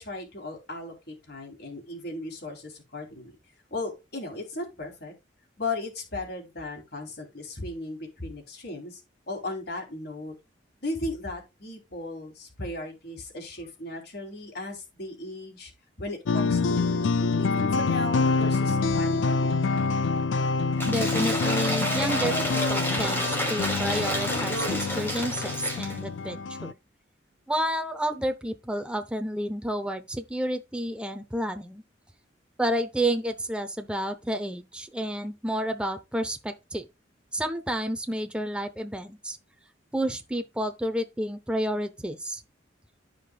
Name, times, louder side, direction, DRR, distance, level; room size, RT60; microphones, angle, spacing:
voice 1, 0.0-3.4 3.7-5.1 5.6-9.0 9.3-10.3 10.8-15.7 16.0-19.6, left 2 dB, 55° left, 3.0 m, -36 dB
sound 1, 16.3-26.7, left 4 dB, 80° left, 0.5 m, -26 dB
Cheering / Applause / Crowd, 20.8-26.0, equal, 10° left, 2.5 m, -29 dB
voice 2, 20.9-26.8 27.5-31.8 32.6-36.9 37.3-39.4 39.9-42.4, right 1 dB, 5° right, 0.6 m, -30 dB
14.0 x 5.1 x 2.3 m
head